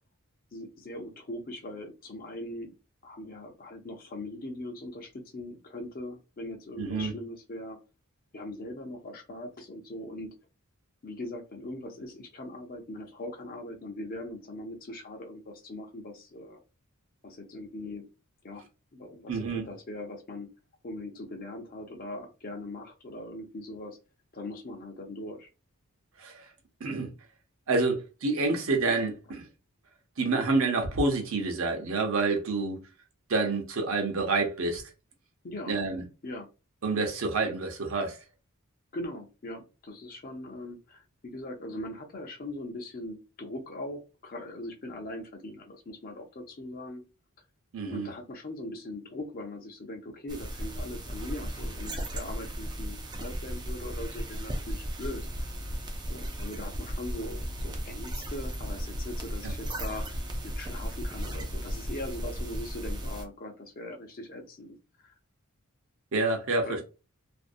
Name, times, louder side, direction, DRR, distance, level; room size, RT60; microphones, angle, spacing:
voice 1, 0.5-2.7 3.0-7.8 8.3-10.3 11.0-16.6 17.2-18.0 18.4-18.6 18.9-20.5 20.8-24.0 24.3-25.5 35.4-35.7 36.2-36.5 38.9-47.0 47.9-55.5 56.1-60.0 60.6-64.7 65.0-65.1 66.6-66.8, left 1 dB, 40° left, 0.5 m, -40 dB
voice 2, 6.8-7.1 19.3-19.6 26.2-26.4 26.8-27.1 27.7-29.5 30.2-32.8 33.3-34.8 35.7-36.0 36.8-38.2 47.7-48.1 59.4-59.5 66.1-66.8, right 3 dB, 60° right, 0.7 m, -28 dB
sound 1, 50.3-63.2, equal, 20° right, 0.3 m, -35 dB
2.5 x 2.0 x 2.5 m
head